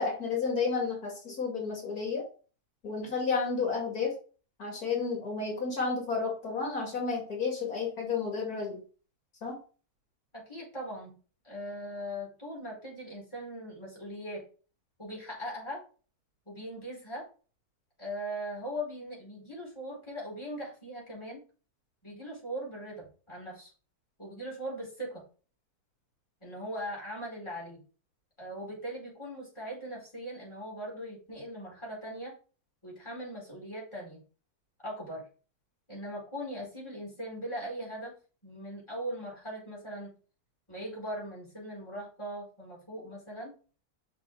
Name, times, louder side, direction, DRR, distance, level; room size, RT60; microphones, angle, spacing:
voice 1, 0.0-2.2 2.8-4.1 4.6-8.8 9.4-9.6, left 5 dB, 80° left, -1 dB, 2.8 m, -31 dB
voice 2, 10.3-11.2 11.4-14.4 15.0-15.8 16.5-17.2 18.0-21.4 22.0-23.7 24.2-25.2 26.4-27.8 28.4-32.3 32.8-34.2 34.8-35.2 35.9-38.1 38.4-40.1 40.7-43.5, equal, 20° left, -4 dB, 4.7 m, -40 dB
6.5 x 6.2 x 4.8 m, 0.39 s
omnidirectional pair, 1.6 m